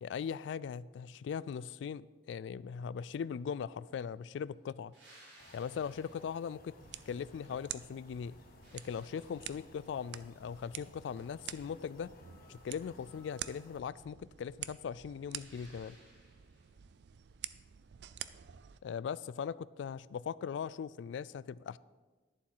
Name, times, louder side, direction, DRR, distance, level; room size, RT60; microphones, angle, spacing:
voice 1, 0.0-4.9 5.5-6.7 7.1-8.3 8.7-12.1 12.5-16.0 18.8-21.8, left 7 dB, 85° left, 20 dB, 0.3 m, -40 dB
sound 1, 4.9-7.8 8.2-10.0 15.4-16.8 19.4-19.5, right 1 dB, 85° right, 3.6 m, -62 dB
sound 2, 5.4-13.8, left 2 dB, 55° left, 1.0 m, -59 dB
sound 3, 6.8-18.8, right 11 dB, 65° right, 0.4 m, -49 dB
11.5 x 7.2 x 4.6 m, 1.3 s
head